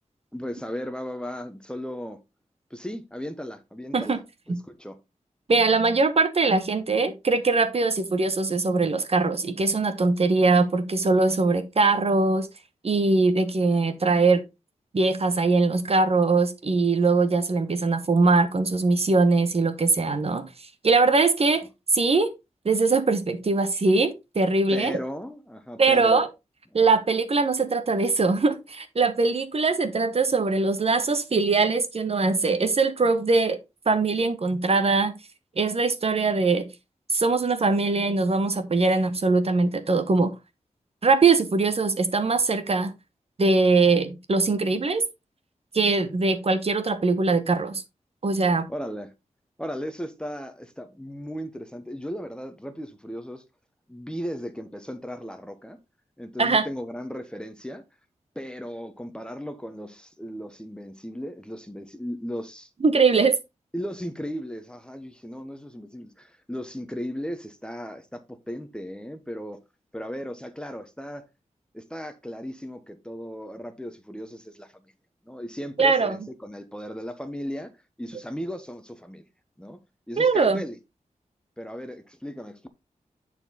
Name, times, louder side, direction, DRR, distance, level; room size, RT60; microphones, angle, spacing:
voice 1, 0.3-2.2 2.7-4.2 4.6-5.0 24.7-26.3 26.7-27.0 48.7-49.1 49.6-53.4 53.9-55.8 56.2-57.8 58.3-62.7 63.7-69.6 69.9-71.3 71.7-74.9 75.2-77.7 78.0-79.2 79.6-79.8 80.1-80.8 81.6-82.7, equal, 5° left, 1.0 m, -36 dB
voice 2, 5.5-12.5 12.8-14.4 14.9-20.4 20.8-21.6 21.9-22.3 22.6-25.0 25.8-26.3 26.7-33.6 33.9-35.1 35.6-36.7 37.1-40.3 41.0-42.9 43.4-45.0 45.7-47.8 48.2-48.7 56.4-56.7 62.8-63.4 75.8-76.2 80.2-80.6, right 3 dB, 50° right, 1.1 m, -21 dB
9.7 x 4.5 x 3.9 m
wide cardioid pair, 105°, 13 cm